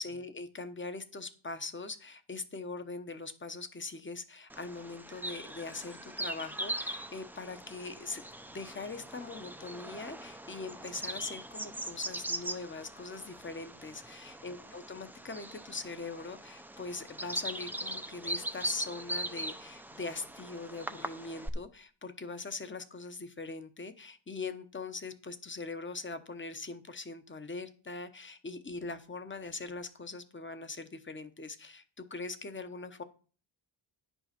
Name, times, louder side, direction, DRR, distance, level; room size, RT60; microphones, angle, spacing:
voice 1, 0.0-33.0, left 3 dB, 25° left, 0.9 m, -42 dB
Bird vocalization bird call bird song, 4.5-21.5, right 1 dB, 5° right, 0.5 m, -41 dB
10.0 x 5.5 x 5.8 m
wide cardioid pair, 140°, 48 cm